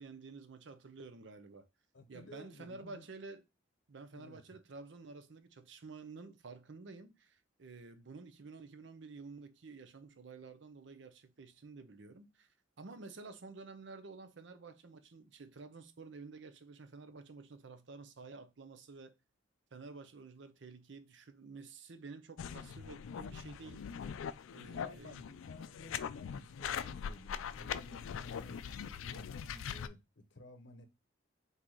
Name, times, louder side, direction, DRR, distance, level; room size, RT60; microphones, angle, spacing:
voice 1, 0.0-1.7 2.1-3.4 3.9-19.2 19.7-23.9 24.5-25.3, right 4 dB, 65° right, 0.6 m, -51 dB
voice 2, 1.9-3.1 4.1-4.4 24.8-28.6 29.1-30.9, left 2 dB, 65° left, 0.7 m, -54 dB
sound 1, 22.4-29.9, left 7 dB, 90° left, 0.3 m, -42 dB
3.8 x 2.7 x 4.5 m
head